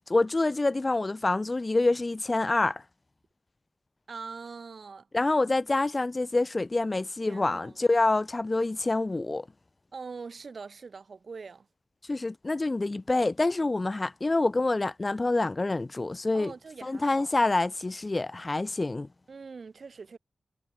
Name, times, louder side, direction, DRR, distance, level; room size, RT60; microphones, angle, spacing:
voice 1, 0.1-2.8 5.1-9.4 12.1-16.5 16.8-19.1, left 2 dB, 25° left, 0.8 m, -26 dB
voice 2, 4.1-5.1 7.3-7.8 9.9-11.7 16.3-17.3 19.3-20.2, right 5 dB, 50° right, 1.6 m, -43 dB
wide cardioid pair, 175°, 0 cm